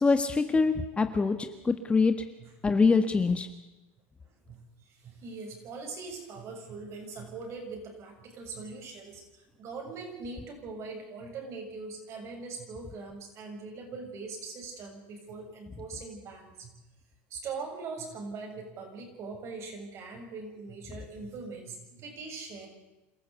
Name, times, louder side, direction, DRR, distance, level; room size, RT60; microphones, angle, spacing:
voice 1, 0.0-1.4 1.6-2.1 2.6-3.5, left 4 dB, 15° left, 8 dB, 1.6 m, -24 dB
voice 2, 4.2-16.7 17.3-22.7, right 4 dB, 45° right, 3 dB, 7.3 m, -41 dB
28.0 x 14.0 x 8.3 m, 1.0 s
supercardioid pair, 105°, 7 cm